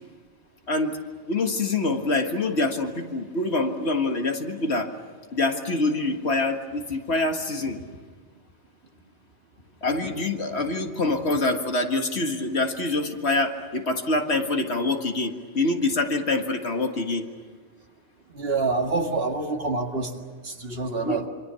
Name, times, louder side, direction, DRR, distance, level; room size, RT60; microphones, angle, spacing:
voice 1, 0.7-1.0 1.3-4.9 5.3-7.8 9.8-17.3 21.0-21.2, left 2 dB, 70° left, 4 dB, 2.0 m, -25 dB
voice 2, 18.3-21.3, right 3 dB, 60° right, 3 dB, 2.2 m, -27 dB
27.0 x 25.0 x 6.9 m, 1.5 s
omnidirectional pair, 1.1 m